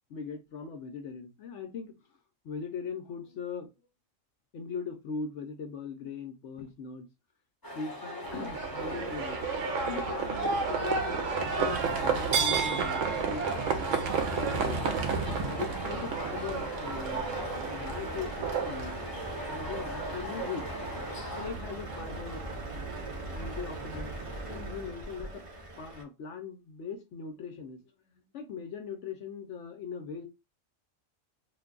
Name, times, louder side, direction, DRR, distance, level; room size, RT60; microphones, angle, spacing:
voice 1, 0.1-1.9 2.4-3.7 4.5-7.1 7.7-9.4 9.9-13.5 14.1-15.0 15.4-17.3 17.7-19.0 19.4-21.1 21.3-22.5 23.3-24.1 24.5-25.4 25.8-27.8 28.1-30.3, left 5 dB, 70° left, 5 dB, 0.9 m, -40 dB
sound 1, 7.6-21.5, left 1 dB, 20° left, 1.0 m, -40 dB
Livestock farm animals working animals, 8.2-24.7, right 5 dB, 75° right, 0.9 m, -33 dB
Truck, 14.8-26.0, right 1 dB, 30° right, 0.7 m, -41 dB
2.6 x 2.2 x 3.6 m, 0.24 s
omnidirectional pair, 1.3 m